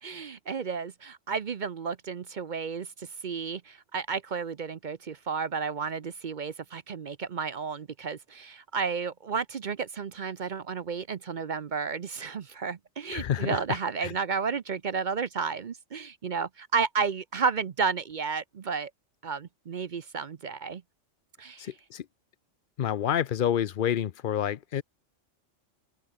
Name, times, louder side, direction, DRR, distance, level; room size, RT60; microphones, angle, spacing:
voice 1, 0.0-18.9 19.2-20.8 21.4-21.7, right 5 dB, 45° right, 0.7 m, -32 dB
voice 2, 13.1-14.1 21.6-22.0 22.8-24.8, left 10 dB, 55° left, 0.7 m, -29 dB
omnidirectional pair, 1.3 m